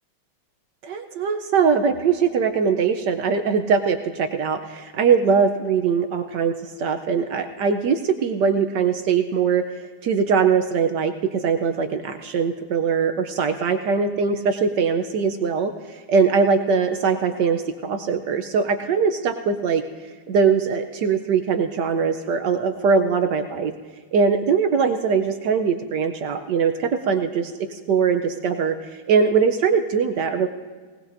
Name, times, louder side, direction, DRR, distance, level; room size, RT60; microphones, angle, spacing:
voice 1, 0.8-9.6 10.0-23.7 24.1-30.5, right 6 dB, 70° right, 7 dB, 1.1 m, -21 dB
19.5 x 19.0 x 2.6 m, 1.5 s
omnidirectional pair, 2.2 m